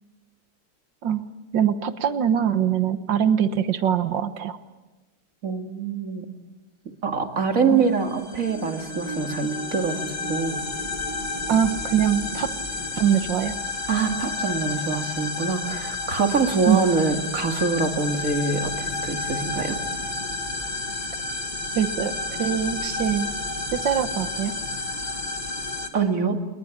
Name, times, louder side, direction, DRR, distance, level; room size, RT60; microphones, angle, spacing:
voice 1, 1.5-4.6 7.7-7.8 11.5-12.5 13.0-13.6 16.7-16.8 21.8-22.1 22.4-23.3 23.7-24.5, right 9 dB, 90° right, 10 dB, 1.9 m, -23 dB
voice 2, 5.4-6.3 7.0-10.6 13.9-19.8 25.9-26.4, right 5 dB, 50° right, 4 dB, 2.6 m, -25 dB
sound 1, 7.8-25.9, left 3 dB, 25° left, 1.9 m, -31 dB
29.5 x 21.5 x 7.4 m, 1.1 s
omnidirectional pair, 1.9 m